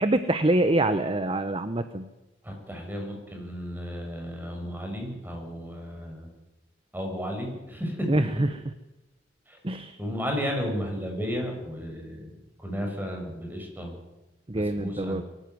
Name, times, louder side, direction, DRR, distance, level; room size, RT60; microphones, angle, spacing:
voice 1, 0.0-2.1 8.1-8.6 9.6-10.0 14.5-15.2, right 1 dB, 30° right, 11 dB, 0.9 m, -25 dB
voice 2, 2.4-6.3 6.9-8.1 9.5-9.6 10.0-12.3 12.6-13.9 14.5-15.2, equal, 10° right, 1 dB, 6.3 m, -33 dB
23.0 x 14.0 x 9.5 m, 1.0 s
head